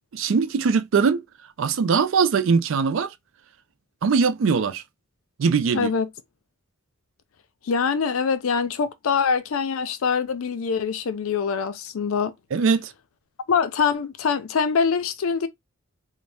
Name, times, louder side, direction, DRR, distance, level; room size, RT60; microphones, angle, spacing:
voice 1, 0.1-1.2 1.6-3.1 4.0-4.8 5.4-5.9 12.5-12.9, right 5 dB, 65° right, 0.4 m, -21 dB
voice 2, 5.7-6.1 7.6-12.3 13.5-15.5, left 6 dB, 85° left, 0.5 m, -24 dB
2.7 x 2.1 x 3.3 m
head